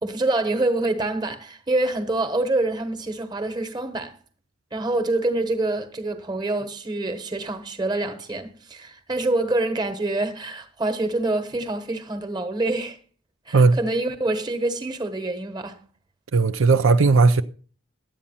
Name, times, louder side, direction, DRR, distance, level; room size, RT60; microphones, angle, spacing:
voice 1, 0.0-4.1 4.7-13.0 13.5-15.8, right 2 dB, 20° right, 1.1 m, -26 dB
voice 2, 16.3-17.4, right 4 dB, 70° right, 0.5 m, -16 dB
12.0 x 8.6 x 5.6 m
head